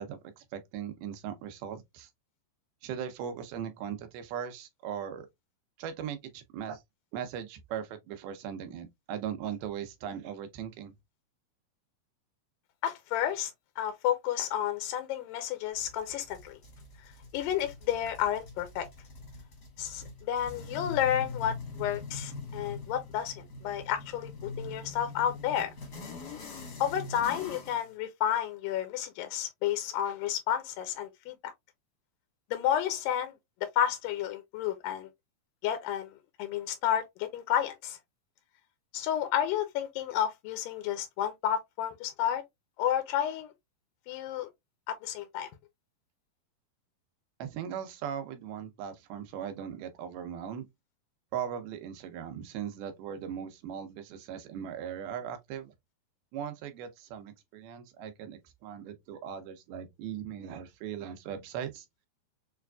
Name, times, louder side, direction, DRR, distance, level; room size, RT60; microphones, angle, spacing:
voice 1, 0.0-2.1 2.8-5.3 5.8-6.8 7.1-10.9 47.4-50.7 51.3-55.7 56.3-61.9, right 8 dB, 90° right, 2.7 m, -39 dB
voice 2, 12.8-13.5 13.8-16.6 17.3-18.9 19.8-23.3 23.6-25.7 26.8-31.5 32.5-33.3 33.8-35.1 35.6-36.1 36.4-38.0 38.9-42.4 42.8-43.5 44.1-44.5 44.9-45.5, left 10 dB, 80° left, 2.0 m, -31 dB
sound 1, 15.8-27.9, left 3 dB, 55° left, 1.1 m, -43 dB
6.6 x 2.5 x 2.2 m
omnidirectional pair, 4.3 m